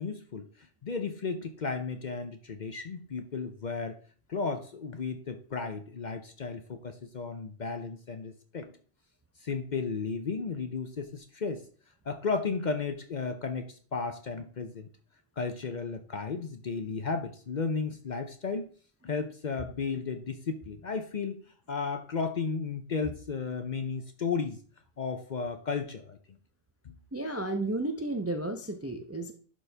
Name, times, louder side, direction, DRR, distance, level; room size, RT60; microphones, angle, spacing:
voice 1, 0.0-3.9 4.3-8.7 9.4-11.7 12.1-14.9 15.4-18.7 19.0-21.4 21.7-24.6 25.0-26.2 26.8-27.0, left 4 dB, 50° left, 8 dB, 0.6 m, -34 dB
voice 2, 27.1-29.3, right 2 dB, 20° right, 5 dB, 0.4 m, -32 dB
11.0 x 4.2 x 3.4 m, 0.43 s
omnidirectional pair, 1.3 m